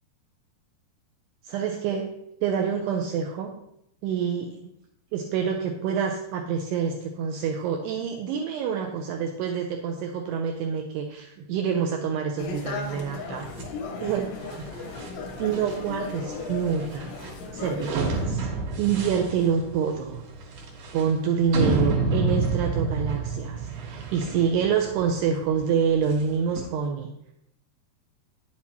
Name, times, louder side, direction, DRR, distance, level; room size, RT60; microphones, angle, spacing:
voice 1, 1.4-2.1 2.4-3.6 4.0-4.6 5.1-13.5 14.0-14.3 14.6-14.7 15.4-17.1 17.5-18.5 18.8-20.2 20.9-27.1, right 7 dB, 80° right, 2 dB, 2.5 m, -27 dB
sound 1, 12.4-18.2, left 3 dB, 85° left, 3.5 m, -36 dB
sound 2, 13.4-26.7, right 3 dB, 60° right, 2.7 m, -30 dB
9.6 x 8.4 x 2.9 m, 0.77 s
omnidirectional pair, 5.3 m